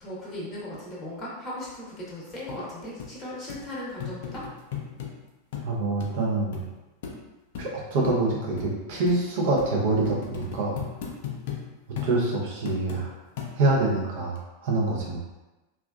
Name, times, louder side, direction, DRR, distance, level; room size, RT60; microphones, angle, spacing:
voice 1, 0.0-4.4, left 1 dB, 25° left, -6 dB, 0.8 m, -37 dB
sound 1, 2.5-2.6 3.0-3.1 3.5-3.6 4.0-5.1 5.5-5.7 6.0-6.1 6.5-6.6 7.0-7.2 7.5-7.7 8.0-8.2 8.6-8.7 9.1-9.2 9.6-9.7 10.0-11.6 12.0-12.1 12.7-13.0 13.4-13.8 14.4-14.5, left 8 dB, 55° left, 0.4 m, -36 dB
voice 2, 5.6-6.6 7.6-10.8 12.0-13.1 13.5-14.4 14.6-15.2, right 2 dB, 50° right, -3 dB, 0.6 m, -25 dB
2.5 x 2.2 x 2.2 m, 1.1 s
figure-of-eight pair, 90°, 0 cm